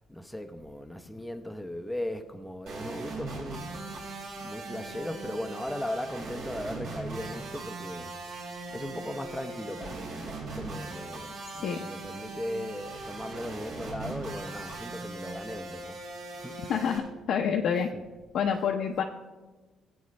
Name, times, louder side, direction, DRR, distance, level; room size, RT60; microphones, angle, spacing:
voice 1, 0.0-4.0 4.4-8.2 8.7-16.0 16.3-16.6 17.9-18.0 18.4-18.6, left 1 dB, ahead, 0.6 m, -38 dB
sound 1, 2.7-17.0, right 3 dB, 70° right, 3.8 m, -40 dB
voice 2, 11.5-11.9 16.7-17.9 18.3-19.0, left 7 dB, 60° left, 0.6 m, -28 dB
18.0 x 8.5 x 3.2 m
cardioid pair, 140°, 0 cm